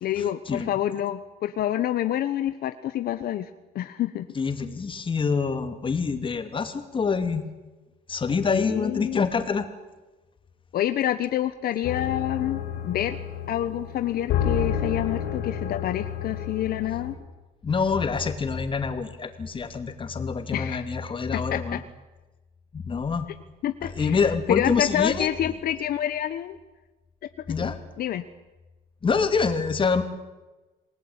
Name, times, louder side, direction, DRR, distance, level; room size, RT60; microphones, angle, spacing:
voice 1, 0.0-3.5 3.7-4.3 8.5-9.2 10.7-13.2 13.5-17.1 20.5-20.9 21.3-21.8 23.6-24.2 24.5-26.6 27.6-27.7 28.0-28.2, left 11 dB, 65° left, 10 dB, 1.2 m, -27 dB
voice 2, 4.3-7.4 8.1-9.7 17.6-21.8 22.7-23.3 23.8-25.3 27.5-27.8 29.0-30.0, left 5 dB, 30° left, 8 dB, 2.8 m, -26 dB
sound 1, 11.8-17.1, left 9 dB, 90° left, 5.3 m, -30 dB
28.0 x 19.0 x 8.9 m, 1.1 s
cardioid pair, 110°, 17 cm